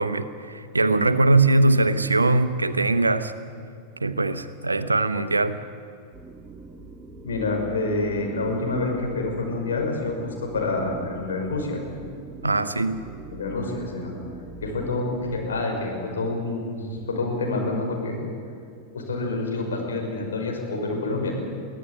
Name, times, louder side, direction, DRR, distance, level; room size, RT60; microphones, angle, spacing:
voice 1, 0.0-3.3 4.0-5.6 12.4-13.0, right 2 dB, 80° right, 12 dB, 1.0 m, -21 dB
sound 1, 6.1-15.6, right 3 dB, 15° right, 2.3 m, -43 dB
voice 2, 7.2-11.8 13.3-14.2 14.6-18.2 18.9-21.3, left 2 dB, 65° left, 1 dB, 5.7 m, -27 dB
23.5 x 16.5 x 8.6 m, 2.4 s
figure-of-eight pair, 90°, 0 cm